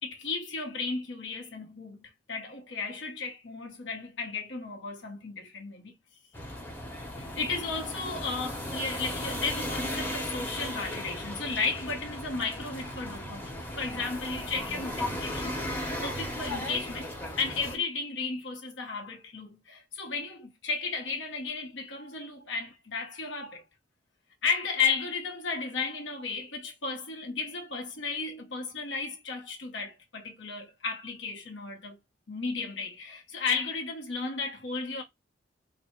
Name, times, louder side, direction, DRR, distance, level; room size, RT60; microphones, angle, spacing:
voice 1, 0.0-5.9 7.2-17.1 17.4-23.6 24.4-32.0 32.3-35.0, left 4 dB, 85° left, 0.9 m, -34 dB
sound 1, 6.3-17.8, left 1 dB, 10° left, 0.8 m, -36 dB
3.3 x 2.1 x 4.2 m
head